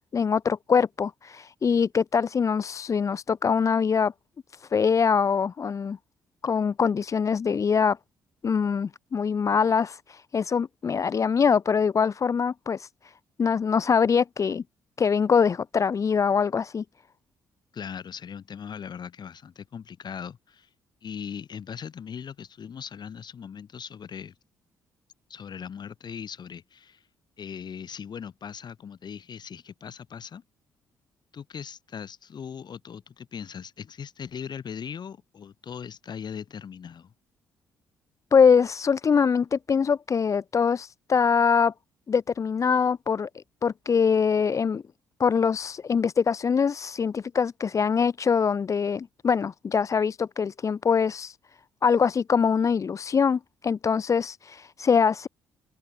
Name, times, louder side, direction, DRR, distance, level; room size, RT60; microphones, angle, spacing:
voice 1, 0.1-4.1 4.6-6.0 6.4-8.0 8.4-13.1 13.4-14.6 15.0-16.8 38.3-41.7 42.1-44.8 45.2-51.4 51.8-55.3, left 6 dB, 35° left, 0.4 m, -23 dB
voice 2, 17.7-20.7 21.0-24.3 25.3-27.0 27.4-30.4 31.3-37.1, left 7 dB, 50° left, 2.6 m, -39 dB
open air
hypercardioid pair, 45°, 9 cm